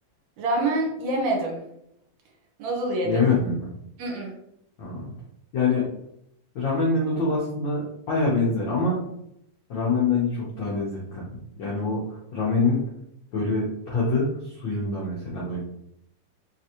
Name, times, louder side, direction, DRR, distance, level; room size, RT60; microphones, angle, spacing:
voice 1, 0.4-1.6 2.6-3.2 4.0-4.3, right 2 dB, 70° right, -1 dB, 2.2 m, -26 dB
voice 2, 3.0-3.7 4.8-5.0 5.5-5.9 6.5-9.0 9.7-11.3 11.6-12.8 13.3-15.6, left 3 dB, 80° left, -5 dB, 1.0 m, -25 dB
4.6 x 3.3 x 2.9 m, 0.77 s
omnidirectional pair, 3.4 m